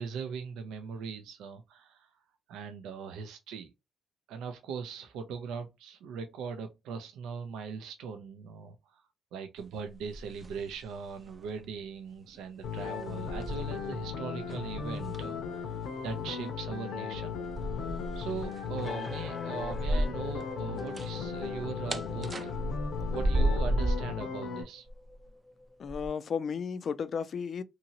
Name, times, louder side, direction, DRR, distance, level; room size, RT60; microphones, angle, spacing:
voice 1, 0.0-2.1 2.5-3.7 4.3-9.0 9.3-15.7 16.0-17.4 18.1-22.5 23.0-24.9, right 6 dB, 90° right, 0.5 m, -40 dB
sound 1, 9.9-10.9 11.2-11.5 12.4-12.5 13.0-14.1 14.5-15.4 17.4-20.4 20.7-24.1 24.9-25.3 25.9-26.1, right 1 dB, 25° right, 0.4 m, -33 dB
sound 2, 12.6-24.6, left 6 dB, 85° left, 0.8 m, -37 dB
sound 3, 18.8-26.1, left 2 dB, 15° left, 0.7 m, -47 dB
voice 2, 25.8-27.6, left 6 dB, 55° left, 0.4 m, -33 dB
2.8 x 2.7 x 2.7 m
cardioid pair, 90°, 0 cm